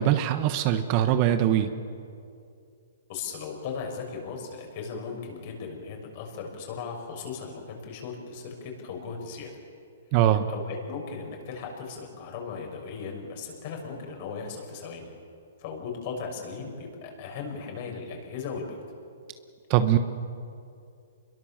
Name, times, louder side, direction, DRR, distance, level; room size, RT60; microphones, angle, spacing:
voice 1, 0.0-1.7 10.1-10.5 19.7-20.0, right 11 dB, 30° right, 9 dB, 1.2 m, -22 dB
voice 2, 3.1-9.5 10.5-15.1 15.6-18.8, left 5 dB, 40° left, 1 dB, 6.6 m, -37 dB
28.0 x 22.0 x 7.4 m, 2.4 s
hypercardioid pair, 155°, 0 cm